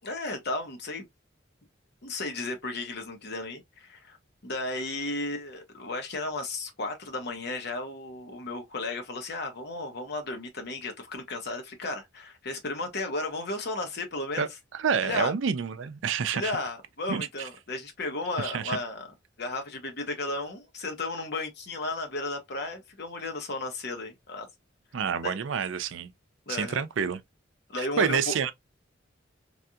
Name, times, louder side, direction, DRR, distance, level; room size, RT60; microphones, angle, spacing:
voice 1, 0.0-1.0 2.0-4.2 4.4-14.5 15.0-15.3 16.3-19.1 19.4-24.5 25.2-25.3 26.5-26.9 27.7-28.3, left 2 dB, 60° left, 1.0 m, -34 dB
voice 2, 14.7-16.5 17.1-17.3 18.4-18.8 24.9-26.1 26.5-27.2 27.8-28.5, right 6 dB, 80° right, 0.4 m, -28 dB
3.3 x 2.7 x 2.3 m
head